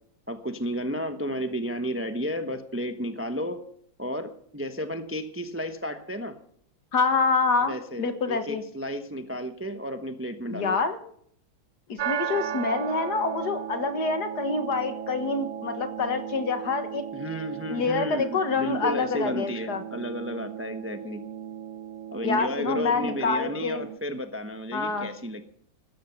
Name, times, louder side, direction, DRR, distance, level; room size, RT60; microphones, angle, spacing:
voice 1, 0.3-3.6 4.0-6.4 7.6-10.8 17.1-21.2 22.1-25.4, equal, 15° right, 7 dB, 0.5 m, -32 dB
voice 2, 6.9-8.6 10.5-11.0 11.9-17.0 17.7-19.8 22.2-23.9 24.7-25.1, left 4 dB, 55° left, 8 dB, 1.8 m, -27 dB
sound 1, 12.0-24.0, right 9 dB, 70° right, 0.7 m, -36 dB
17.5 x 13.5 x 5.9 m, 0.65 s
omnidirectional pair, 2.3 m